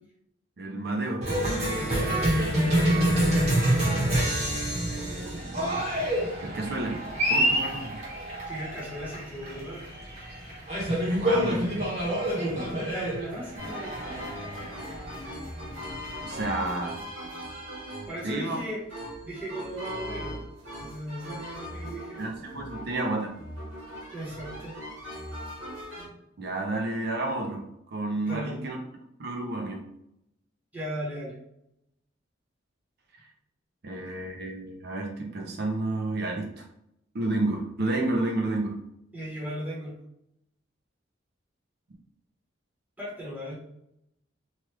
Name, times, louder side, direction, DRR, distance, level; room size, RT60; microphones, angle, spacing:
voice 1, 0.6-1.3 4.9-5.8 6.4-7.0 7.3-8.0 11.2-11.7 16.2-17.0 18.2-18.6 22.2-23.3 26.4-27.6 27.9-28.8 29.2-29.8 33.8-36.6 37.1-38.8, right 2 dB, 60° right, 1 dB, 0.6 m, -30 dB
Cheering, 1.2-16.4, right 1 dB, 40° right, 1.1 m, -27 dB
voice 2, 1.8-3.2 8.5-9.8 12.3-14.2 18.1-18.8 19.2-20.4 20.8-22.2 24.1-24.7 28.2-28.7 30.7-31.4 39.1-39.9 43.0-43.5, equal, 10° right, -7 dB, 1.1 m, -37 dB
sound 1, 13.6-26.1, equal, 75° right, 1.3 m, -40 dB
3.0 x 2.3 x 3.2 m, 0.79 s
head